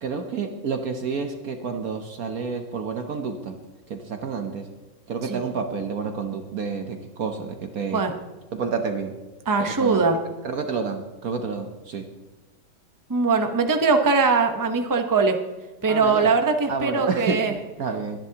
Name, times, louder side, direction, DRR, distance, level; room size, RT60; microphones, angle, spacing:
voice 1, 0.0-3.6 3.9-4.7 5.1-8.1 8.5-9.2 9.6-10.0 10.4-12.1 15.8-16.3 16.7-18.2, right 5 dB, 55° right, 5 dB, 1.2 m, -29 dB
voice 2, 9.5-10.2 13.1-15.4 15.8-17.5, right 4 dB, 30° right, 5 dB, 0.3 m, -21 dB
22.0 x 10.5 x 2.9 m, 1.2 s
omnidirectional pair, 2.1 m